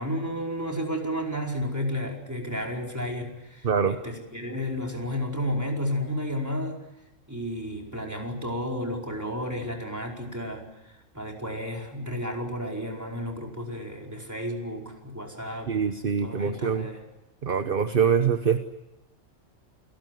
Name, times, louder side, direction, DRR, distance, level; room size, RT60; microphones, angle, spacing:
voice 1, 0.0-6.8 7.3-10.6 11.1-15.8 16.2-17.0, equal, 15° right, 0 dB, 4.8 m, -32 dB
voice 2, 3.6-4.0 15.7-16.9 17.4-18.6, right 7 dB, 45° right, 9 dB, 1.2 m, -24 dB
29.0 x 18.0 x 9.3 m, 0.94 s
omnidirectional pair, 1.3 m